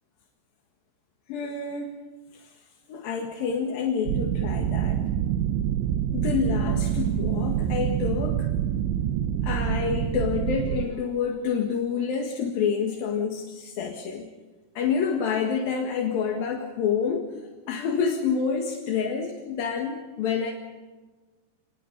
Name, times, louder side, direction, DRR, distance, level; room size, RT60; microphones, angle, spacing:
voice 1, 1.3-2.0 2.3-2.5 2.9-5.0 6.1-8.5 9.4-14.3 14.7-17.3 17.7-20.5, left 6 dB, 60° left, 2 dB, 3.2 m, -28 dB
sound 1, 4.1-10.9, right 10 dB, 90° right, 3.4 m, -26 dB
27.5 x 21.0 x 5.6 m, 1.3 s
omnidirectional pair, 5.3 m